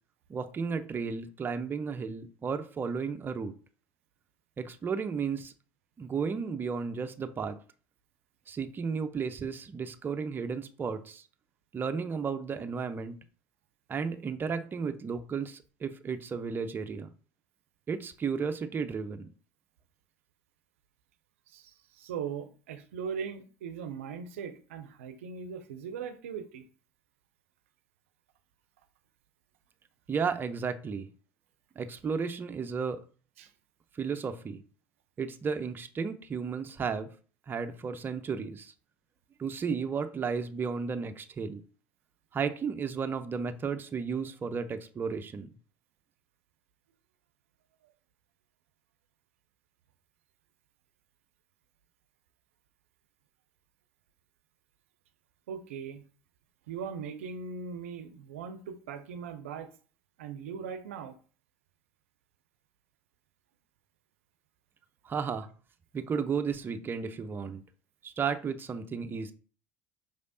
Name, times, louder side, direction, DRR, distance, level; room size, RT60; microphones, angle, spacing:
voice 1, 0.3-3.5 4.6-5.5 6.0-7.6 8.5-11.3 11.7-13.2 13.9-17.1 17.9-19.3 30.1-31.1 31.8-33.0 33.9-34.6 35.2-37.1 37.5-38.7 39.4-41.6 42.3-45.5 65.0-65.5 65.9-67.6 68.0-69.3, right 5 dB, 30° right, 8 dB, 0.6 m, -33 dB
voice 2, 21.5-26.6 33.4-33.5 55.5-56.0 56.7-59.7 60.2-61.1, right 6 dB, 85° right, 10 dB, 0.5 m, -39 dB
5.4 x 3.3 x 2.6 m, 0.39 s
hypercardioid pair, 80°, 7 cm